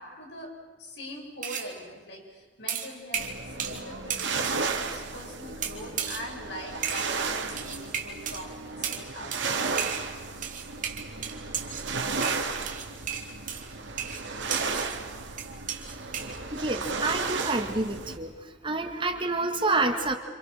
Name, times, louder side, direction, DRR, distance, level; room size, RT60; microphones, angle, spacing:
voice 1, 0.0-9.5, left 1 dB, 65° left, 0 dB, 6.8 m, -43 dB
sound 1, 1.4-1.7 2.7-3.8 4.1-4.6 5.6-6.3 6.8-7.1 7.6-8.4 8.8-9.0 9.3-9.5 9.8-10.1 10.4-11.9 12.2-15.0 15.4-16.4, right 8 dB, 45° right, 2.7 m, -34 dB
sound 2, 3.1-18.2, right 4 dB, 85° right, 2.9 m, -34 dB
voice 2, 16.5-18.3 18.6-20.1, right 3 dB, 25° right, 6 dB, 1.9 m, -28 dB
28.0 x 27.5 x 6.7 m, 1.5 s
head